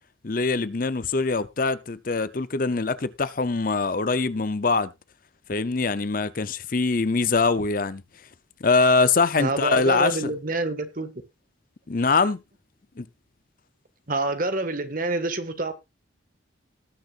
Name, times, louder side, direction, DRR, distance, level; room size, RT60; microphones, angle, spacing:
voice 1, 0.2-4.9 5.5-8.0 8.6-10.3 11.9-12.4 13.0-13.1, left 4 dB, 45° left, 0.7 m, -23 dB
voice 2, 9.4-11.1 14.1-15.7, right 2 dB, 45° right, 1.8 m, -27 dB
19.5 x 6.7 x 2.5 m
head